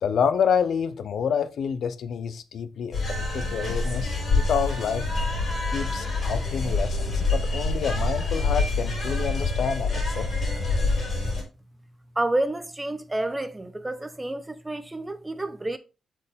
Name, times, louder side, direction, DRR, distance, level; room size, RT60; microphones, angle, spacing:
voice 1, 0.0-5.1 5.7-10.5, left 7 dB, 65° left, 0.7 m, -28 dB
sound 1, 2.9-11.4, left 3 dB, 40° left, 4.0 m, -26 dB
voice 2, 12.2-15.8, right 1 dB, 10° right, 0.7 m, -29 dB
7.7 x 4.7 x 3.6 m
wide cardioid pair, 155°, 0 cm